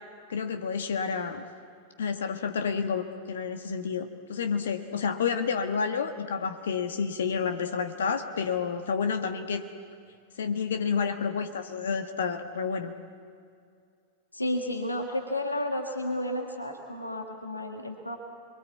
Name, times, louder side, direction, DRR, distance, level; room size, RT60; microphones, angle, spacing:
voice 1, 0.3-1.4 2.0-9.7 10.4-12.9, left 6 dB, 65° left, 7 dB, 1.4 m, -30 dB
voice 2, 14.3-18.2, left 1 dB, 85° left, 3 dB, 1.7 m, -32 dB
28.0 x 23.0 x 8.4 m, 2.3 s
figure-of-eight pair, 90°, 0 cm